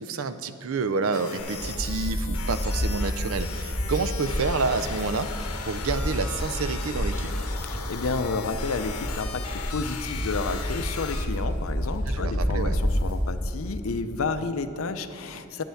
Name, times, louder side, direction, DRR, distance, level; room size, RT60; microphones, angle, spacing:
voice 1, 0.0-5.3 5.7-7.3 12.1-12.8, right 4 dB, 65° right, 11 dB, 0.5 m, -29 dB
sound 1, 1.1-11.3, left 5 dB, 85° left, 0.9 m, -38 dB
sound 2, 1.4-13.7, equal, 10° right, 2.2 m, -30 dB
voice 2, 7.6-15.6, left 4 dB, 65° left, 10 dB, 0.5 m, -31 dB
10.0 x 5.6 x 7.6 m, 2.5 s
head